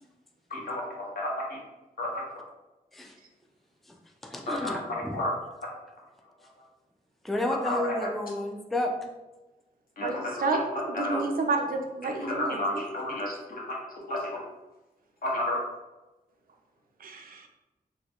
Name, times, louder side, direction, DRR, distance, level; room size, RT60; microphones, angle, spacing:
voice 1, 0.5-0.8 1.2-1.3 2.0-2.1 4.5-5.3 7.6-7.8 10.0-11.2 12.2-13.4 14.1-14.4 15.2-15.6, left 1 dB, 70° left, -4 dB, 1.0 m, -31 dB
voice 2, 4.2-5.2 7.2-8.9, left 1 dB, ahead, 2 dB, 0.3 m, -31 dB
voice 3, 10.0-10.6 10.9-12.6 17.0-17.5, right 3 dB, 75° right, 3 dB, 0.5 m, -30 dB
3.9 x 2.2 x 2.9 m, 1.1 s
wide cardioid pair, 140°, 15 cm